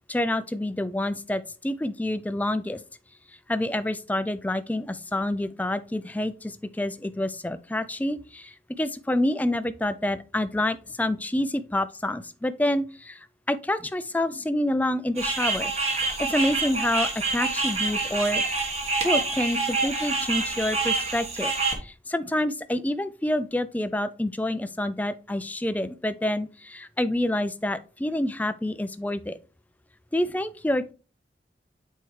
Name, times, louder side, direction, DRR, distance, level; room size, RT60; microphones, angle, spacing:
voice 1, 0.1-2.8 3.5-15.7 16.2-18.4 19.0-21.5 21.8-29.4 30.1-30.9, left 1 dB, 10° left, 0.3 m, -27 dB
sound 1, 15.2-21.7, right 3 dB, 35° right, 1.4 m, -27 dB
8.2 x 4.4 x 3.2 m
head